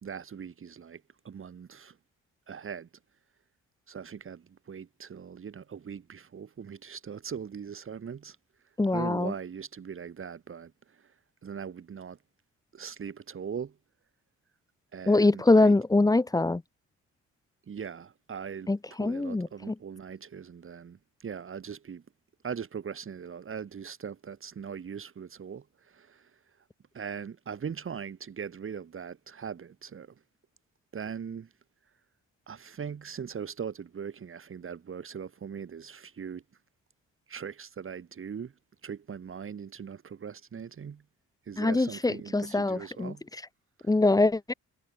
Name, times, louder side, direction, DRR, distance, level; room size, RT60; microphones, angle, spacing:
voice 1, 0.0-2.0 2.5-2.9 3.9-8.4 8.9-11.1 11.4-12.2 12.7-13.7 14.9-15.7 17.7-18.7 19.0-22.0 22.4-26.4 26.9-30.1 30.9-31.5 32.5-36.4 37.3-38.5 38.8-41.0 41.5-43.2 43.8-43.9, right 7 dB, 45° right, 3.0 m, -40 dB
voice 2, 8.8-9.3 15.1-16.6 18.7-19.7 41.6-43.1 43.9-44.5, left 2 dB, 10° left, 0.8 m, -24 dB
cardioid pair, 90°, 30 cm